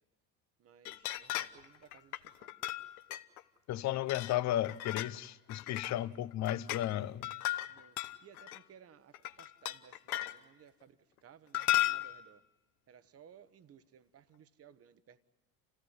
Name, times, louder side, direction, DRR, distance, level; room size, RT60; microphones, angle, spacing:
voice 1, 0.6-2.1 7.7-7.9 8.2-8.4 8.7-9.1 9.4-10.9 11.2-12.4 12.9-15.2, right 8 dB, 30° right, 1.1 m, -59 dB
sound 1, 0.9-1.7 1.9-3.4 4.1-5.2 5.5-6.0 6.3-6.9 7.2-8.6 9.1-10.4 11.5-12.2, left 14 dB, 60° left, 1.2 m, -35 dB
voice 2, 3.7-7.3, left 13 dB, 35° left, 0.7 m, -34 dB
28.0 x 16.5 x 9.6 m
hypercardioid pair, 80°, 48 cm